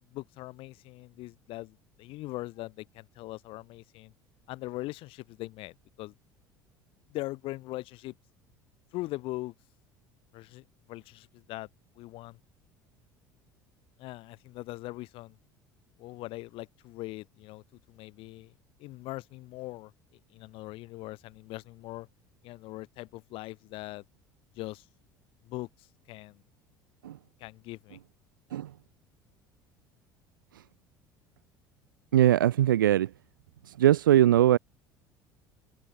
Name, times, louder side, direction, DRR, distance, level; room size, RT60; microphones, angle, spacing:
voice 1, 0.1-4.1 4.5-6.1 7.1-8.1 8.9-9.5 10.3-11.7 12.0-12.4 14.0-15.4 16.0-17.6 17.9-18.5 18.8-19.9 20.3-22.1 22.4-24.0 24.6-24.8 25.4-25.7 26.1-26.4 27.4-28.0, left 19 dB, 55° left, 4.3 m, -41 dB
voice 2, 32.1-33.1 33.7-34.6, right 12 dB, 70° right, 1.3 m, -21 dB
figure-of-eight pair, 65°, 11 cm